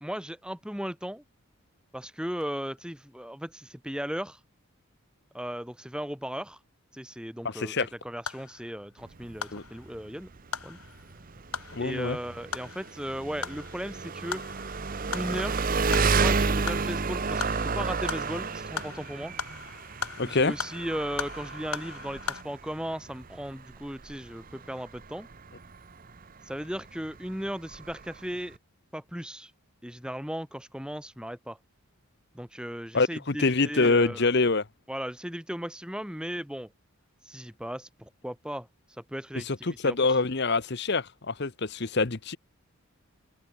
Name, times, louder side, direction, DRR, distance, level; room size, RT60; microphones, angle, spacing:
voice 1, 0.0-1.2 1.9-4.4 5.3-6.6 6.9-10.3 10.6-10.8 11.8-14.4 15.1-15.7 16.1-19.3 20.2-25.3 26.5-28.6 28.9-29.5 29.8-31.6 32.3-34.3 34.9-36.7 37.3-38.7 39.1-40.0, equal, 5° right, 1.9 m, -36 dB
voice 2, 7.4-7.9 9.5-9.6 11.7-12.2 20.2-20.5 32.9-34.6 39.3-42.4, left 3 dB, 50° left, 1.0 m, -25 dB
sound 1, 7.7-22.4, left 6 dB, 90° left, 5.4 m, -40 dB
Engine, 9.0-28.6, right 4 dB, 40° right, 0.7 m, -32 dB
head